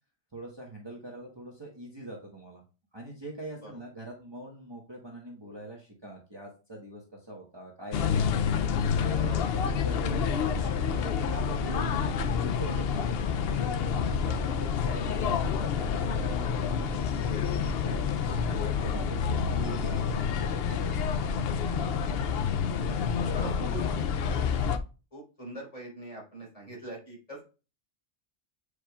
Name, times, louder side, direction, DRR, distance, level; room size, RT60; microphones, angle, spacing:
voice 1, 0.3-2.6 2.9-13.2 14.4-21.1 22.8-24.0, right 1 dB, 25° right, -2 dB, 1.2 m, -44 dB
sound 1, 7.9-24.8, left 6 dB, 70° left, 0.8 m, -28 dB
voice 2, 23.3-23.8 24.3-24.4 25.1-27.4, right 1 dB, 35° left, -4 dB, 3.8 m, -43 dB
8.4 x 4.9 x 2.3 m, 0.33 s
omnidirectional pair, 1.1 m